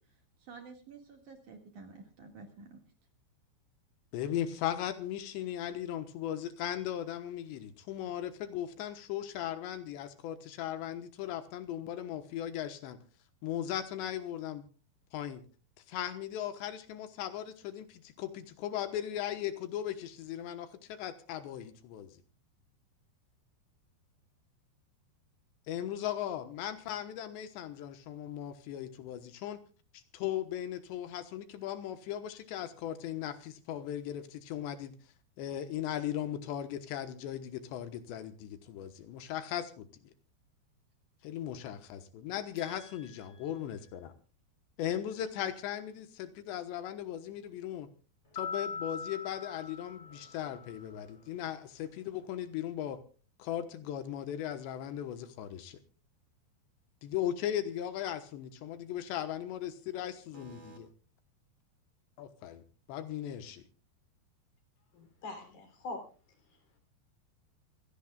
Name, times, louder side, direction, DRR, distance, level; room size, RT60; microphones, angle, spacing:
voice 1, 0.4-2.8 42.6-43.6 60.3-60.8, right 4 dB, 50° right, 3 dB, 3.1 m, -52 dB
voice 2, 4.1-13.0 13.4-14.7 15.1-15.4 15.9-22.1 25.7-29.6 29.9-34.9 35.4-39.9 41.2-44.1 44.8-47.9 48.3-53.0 53.4-55.8 57.0-60.9 62.2-62.6 62.9-63.6, left 11 dB, 85° left, 9 dB, 3.3 m, -38 dB
sound 1, 48.4-50.9, left 5 dB, 15° left, 4.0 m, -41 dB
voice 3, 64.9-66.1, left 2 dB, 55° left, 5 dB, 5.1 m, -43 dB
27.0 x 16.5 x 2.4 m, 0.37 s
omnidirectional pair, 5.1 m